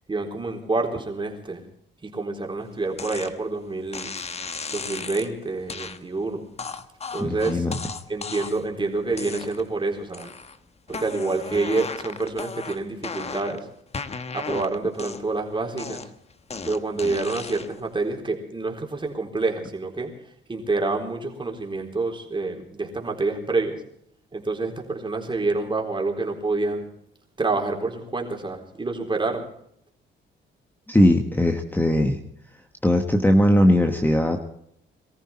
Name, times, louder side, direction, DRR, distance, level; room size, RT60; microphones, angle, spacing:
voice 1, 0.1-1.6 2.0-4.1 4.7-6.4 7.1-7.6 8.1-10.3 10.9-13.6 14.3-16.0 16.7-20.1 20.5-23.8 24.3-26.9 27.4-29.5, right 3 dB, 25° right, 1 dB, 4.0 m, -27 dB
sound 1, 3.0-3.3 3.9-5.3 5.7-6.0 6.6-8.7 9.1-9.8 10.1-10.6 10.9-13.6 13.9-15.4 15.8-17.8, left 4 dB, 30° left, 1.2 m, -35 dB
voice 2, 7.2-7.8 30.9-32.2 32.8-34.4, left 1 dB, 10° left, 4 dB, 1.5 m, -19 dB
22.5 x 14.0 x 4.4 m, 0.71 s
cardioid pair, 90°, 20 cm